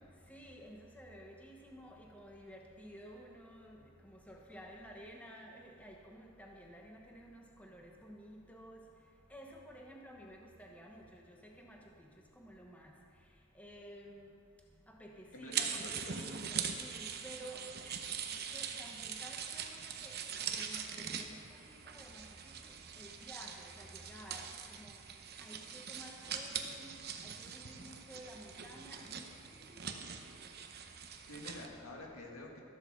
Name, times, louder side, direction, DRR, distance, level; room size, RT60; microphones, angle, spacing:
voice 1, 0.3-8.8 9.3-12.1 12.4-12.9 13.5-14.3 14.9-25.0 25.4-26.9 27.2-29.8, equal, 5° left, 0 dB, 1.0 m, -53 dB
voice 2, 15.3-16.2 31.3-32.6, left 1 dB, 85° left, 0 dB, 2.0 m, -48 dB
sound 1, 15.5-31.7, right 7 dB, 45° right, 0.8 m, -42 dB
13.0 x 8.0 x 6.5 m, 2.3 s
head